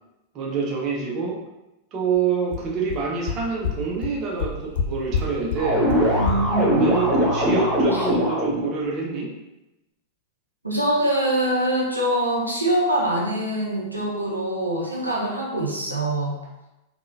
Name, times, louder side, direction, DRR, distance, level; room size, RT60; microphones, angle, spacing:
voice 1, 0.3-1.4 1.9-5.9 6.6-9.3, right 5 dB, 35° right, -2 dB, 0.7 m, -26 dB
sound 1, 2.2-2.3 2.5-2.6 2.9-3.0 3.3-3.4 3.6-3.7 4.0-4.1 4.4-4.8 5.1-5.2 5.5-5.6 5.9-6.0 6.3-6.4, left 6 dB, 60° left, 0.4 m, -24 dB
sound 2, 5.6-8.7, equal, 15° right, 1.0 m, -21 dB
voice 2, 6.1-6.8 7.9-8.1 10.6-16.3, right 1 dB, 85° right, -3 dB, 0.6 m, -24 dB
3.6 x 2.2 x 2.6 m, 0.95 s
figure-of-eight pair, 90°, 0 cm